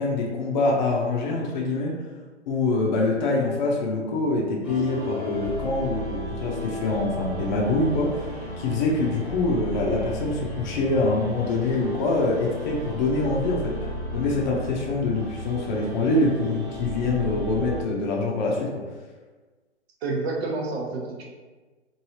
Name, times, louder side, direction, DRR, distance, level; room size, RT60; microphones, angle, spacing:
voice 1, 0.0-1.9 2.5-8.3 8.6-13.7 14.1-18.7, left 2 dB, 40° left, -2 dB, 0.6 m, -25 dB
sound 1, 4.6-17.8, right 1 dB, 5° right, 1.1 m, -34 dB
voice 2, 20.0-21.2, right 3 dB, 60° right, -2 dB, 0.9 m, -29 dB
3.1 x 2.6 x 2.8 m, 1.3 s
figure-of-eight pair, 125°, 35 cm